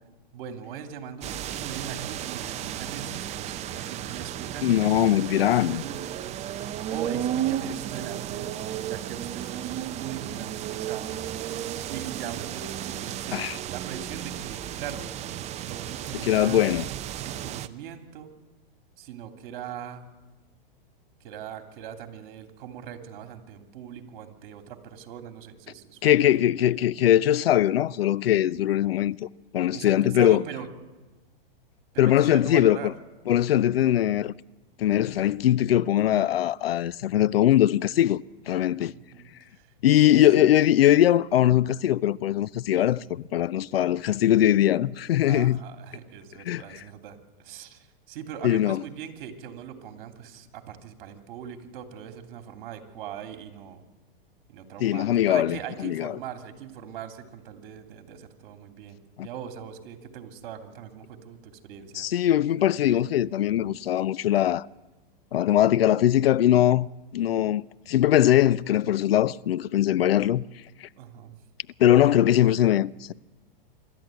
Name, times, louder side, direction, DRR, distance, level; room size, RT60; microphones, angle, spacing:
voice 1, 0.3-4.9 5.3-6.3 6.9-11.2 11.5-13.4 13.7-15.1 15.6-16.6 17.3-18.3 19.0-20.0 21.2-26.3 29.7-30.7 31.9-32.9 38.8-39.7 40.1-40.4 45.2-53.8 54.5-62.1 62.6-63.0 71.0-71.4, right 8 dB, 55° right, 3.0 m, -40 dB
sound 1, 1.2-17.7, right 11 dB, 25° right, 0.6 m, -34 dB
voice 2, 4.6-5.8 13.3-13.6 16.2-16.9 26.0-29.3 29.5-30.4 32.0-32.9 33.3-34.3 34.8-38.9 39.8-45.6 46.5-46.8 48.4-48.8 54.8-56.2 59.2-59.3 61.9-64.7 65.3-66.9 67.1-70.5 71.8-73.1, left 12 dB, 85° left, 0.6 m, -21 dB
25.5 x 13.0 x 9.2 m
hypercardioid pair, 130°, 29 cm